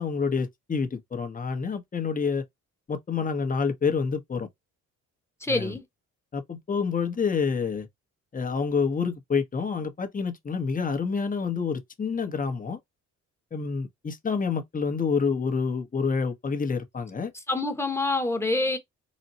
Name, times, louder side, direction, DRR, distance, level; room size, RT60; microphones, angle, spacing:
voice 1, 0.0-2.4 2.9-4.5 5.5-5.8 6.3-7.9 8.3-12.8 13.5-17.3, left 5 dB, 25° left, 1.0 m, -28 dB
voice 2, 5.4-5.8 17.5-18.8, left 2 dB, 10° left, 1.2 m, -26 dB
4.1 x 2.3 x 4.0 m
cardioid pair, 90°, 30 cm